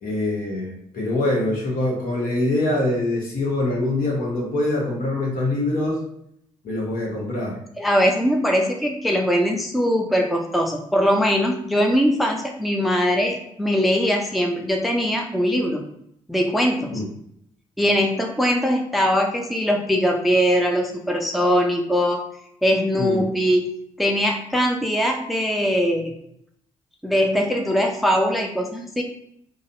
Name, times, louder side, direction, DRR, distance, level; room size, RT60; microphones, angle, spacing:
voice 1, 0.0-6.0 6.6-7.6 16.9-17.1 23.0-23.2, left 2 dB, 55° left, -2 dB, 1.0 m, -24 dB
voice 2, 7.8-15.8 16.3-17.0 17.8-22.2 22.6-23.6 24.0-26.1 27.0-29.0, equal, ahead, 2 dB, 0.5 m, -21 dB
3.8 x 2.0 x 2.6 m, 0.72 s
figure-of-eight pair, 40°, 17 cm